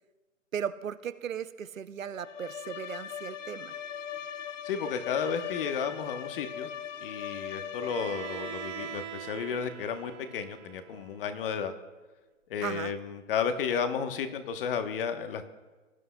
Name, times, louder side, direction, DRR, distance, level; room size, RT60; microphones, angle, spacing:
voice 1, 0.5-3.7 12.6-12.9, right 8 dB, 85° right, 14 dB, 0.7 m, -36 dB
Bowed string instrument, 2.1-9.2, left 9 dB, 70° left, 0.8 m, -40 dB
voice 2, 4.6-6.7 7.0-11.7 12.5-15.5, left 6 dB, 45° left, 9 dB, 1.1 m, -33 dB
Bowed string instrument 2, 7.8-11.7, right 11 dB, 20° right, 0.8 m, -43 dB
20.0 x 11.0 x 2.2 m, 1.2 s
hypercardioid pair, 135°, 38 cm